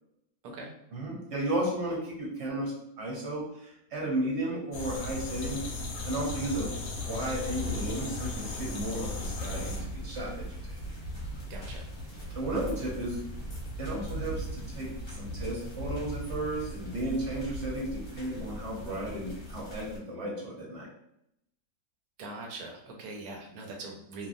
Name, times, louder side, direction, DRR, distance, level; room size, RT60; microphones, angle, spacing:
voice 1, 0.9-5.6 6.0-10.8 12.3-13.2 13.8-20.9, right 1 dB, 55° right, -3 dB, 0.9 m, -34 dB
sound 1, 4.7-9.8, left 3 dB, 75° left, 1.0 m, -36 dB
sound 2, 7.1-20.0, right 1 dB, 45° left, 0.9 m, -40 dB
voice 2, 11.5-11.9 22.2-24.3, right 2 dB, 85° right, 0 dB, 1.1 m, -42 dB
2.9 x 2.3 x 2.5 m, 0.79 s
omnidirectional pair, 1.5 m